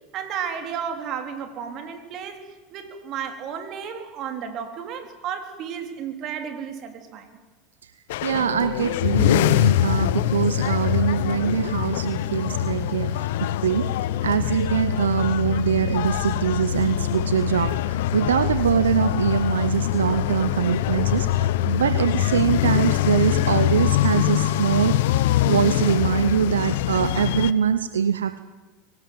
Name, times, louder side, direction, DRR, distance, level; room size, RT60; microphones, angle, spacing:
voice 1, 0.1-2.4 2.7-7.3 8.6-8.7, right 7 dB, 50° right, 6 dB, 3.7 m, -33 dB
sound 1, 8.1-27.5, left 13 dB, 75° left, 0.8 m, -23 dB
voice 2, 8.2-13.9 14.2-25.0 25.4-28.5, right 8 dB, 90° right, 14 dB, 0.7 m, -23 dB
24.0 x 18.0 x 7.8 m, 1.3 s
hypercardioid pair, 90°, 0 cm